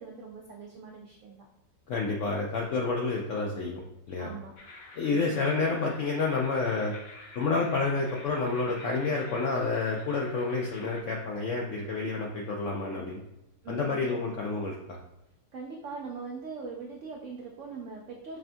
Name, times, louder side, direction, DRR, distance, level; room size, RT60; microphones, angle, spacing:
voice 1, 0.0-1.5 4.2-4.6 5.1-5.4 13.6-14.1 15.5-18.4, right 4 dB, 80° right, 0 dB, 0.6 m, -41 dB
voice 2, 1.9-3.8 4.1-4.3 4.9-6.9 7.4-13.2 13.7-15.0, left 3 dB, 80° left, -1 dB, 0.6 m, -29 dB
sound 1, 4.6-11.0, left 2 dB, 60° left, 1.2 m, -48 dB
5.9 x 2.2 x 2.6 m, 0.89 s
omnidirectional pair, 1.8 m